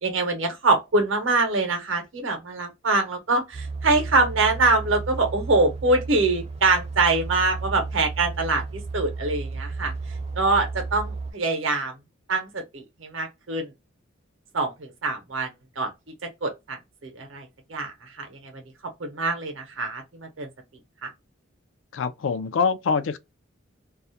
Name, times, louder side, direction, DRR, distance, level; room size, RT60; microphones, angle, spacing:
voice 1, 0.0-9.9 10.4-11.9 12.3-13.7 14.5-15.5 15.8-15.9 16.4-18.5 19.0-20.5 21.0-21.1, right 3 dB, 80° right, 0.7 m, -24 dB
sound 1, 3.5-11.3, right 3 dB, 30° right, 0.5 m, -33 dB
voice 2, 21.9-23.2, left 5 dB, 75° left, 0.4 m, -24 dB
2.3 x 2.0 x 2.7 m
head